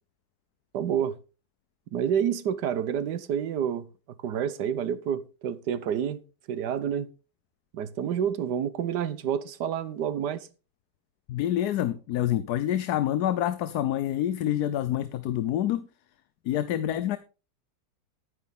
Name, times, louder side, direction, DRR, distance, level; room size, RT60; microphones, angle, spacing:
voice 1, 0.7-1.2 1.9-3.8 4.2-6.2 6.5-7.1 7.7-10.5, right 8 dB, 85° right, 1.5 m, -28 dB
voice 2, 11.3-15.9 16.4-17.2, left 12 dB, 75° left, 1.2 m, -27 dB
10.5 x 9.6 x 3.6 m
omnidirectional pair, 1.7 m